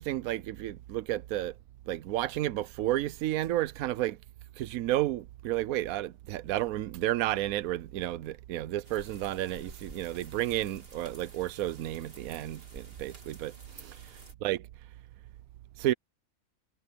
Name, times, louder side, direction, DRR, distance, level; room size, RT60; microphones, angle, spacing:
voice 1, 0.0-1.5 1.9-4.2 4.6-13.5 13.8-14.0 14.4-14.6 15.8-15.9, right 14 dB, 80° right, 1.1 m, -31 dB
sound 1, 8.8-14.3, right 2 dB, 40° right, 2.9 m, -52 dB
omnidirectional pair, 1.5 m